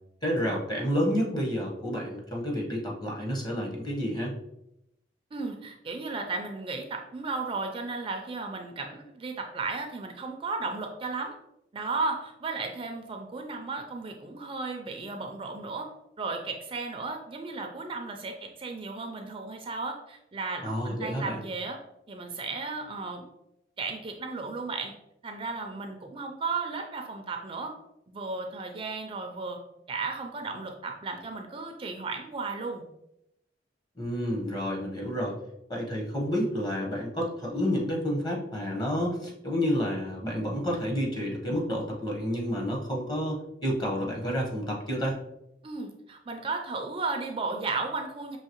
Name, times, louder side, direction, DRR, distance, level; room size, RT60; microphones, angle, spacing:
voice 1, 0.2-4.3 20.6-21.4 34.0-35.3 35.7-45.2, equal, 25° left, -1 dB, 1.0 m, -30 dB
voice 2, 5.3-11.3 11.7-15.9 16.2-21.8 22.1-23.3 23.8-24.9 25.2-27.7 28.1-29.6 29.9-32.8 45.6-48.4, right 3 dB, 30° right, 3 dB, 0.4 m, -34 dB
5.6 x 2.8 x 2.9 m, 0.83 s
head